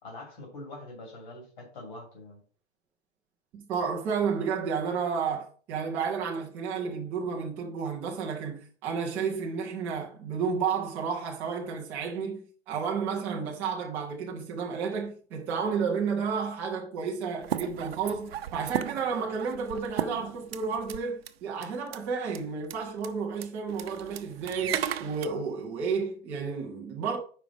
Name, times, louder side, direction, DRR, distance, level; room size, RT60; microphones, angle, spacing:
voice 1, 0.0-2.4, left 2 dB, 45° left, 2.7 m, -44 dB
voice 2, 3.5-27.2, right 5 dB, 5° right, 0.4 m, -31 dB
sound 1, 17.4-21.0 21.3-21.4 21.6-22.0 22.3-22.4 22.6-22.8 23.0-23.1 23.4-25.3, right 10 dB, 65° right, 0.7 m, -35 dB
5.1 x 5.1 x 6.0 m
supercardioid pair, 175°, 32 cm